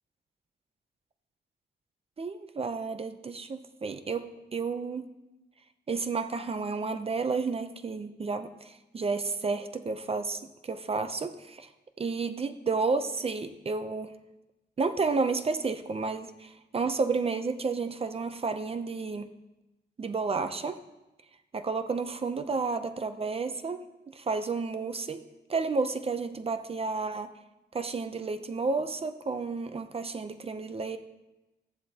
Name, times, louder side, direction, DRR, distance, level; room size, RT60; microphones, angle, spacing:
voice 1, 2.2-5.1 5.9-11.7 12.0-14.1 14.8-19.3 20.0-20.8 21.5-23.8 24.1-25.2 25.5-27.3 27.7-31.0, right 4 dB, 30° right, 9 dB, 0.5 m, -31 dB
14.5 x 10.5 x 2.8 m, 1.0 s
wide cardioid pair, 180°, 19 cm